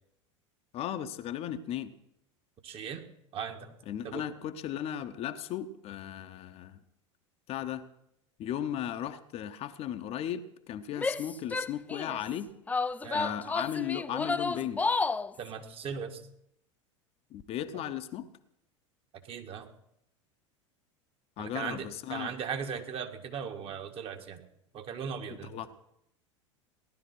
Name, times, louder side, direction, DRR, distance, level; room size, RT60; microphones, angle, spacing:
voice 1, 0.7-1.9 3.9-6.8 7.5-7.9 8.4-12.5 13.1-14.8 17.3-18.3 21.4-22.3 25.5-25.7, left 10 dB, 40° left, 9 dB, 1.0 m, -36 dB
voice 2, 2.6-3.0 3.3-3.8 4.0-4.2 13.0-13.4 15.4-16.2 17.7-17.8 19.2-19.7 21.4-24.4 24.7-25.7, right 7 dB, 35° right, 5 dB, 1.9 m, -38 dB
Female speech woman speaking / Yell, 10.9-12.2 12.7-15.3, left 3 dB, 10° left, 0.5 m, -31 dB
17.5 x 11.5 x 6.0 m, 0.77 s
figure-of-eight pair, 80°, 16 cm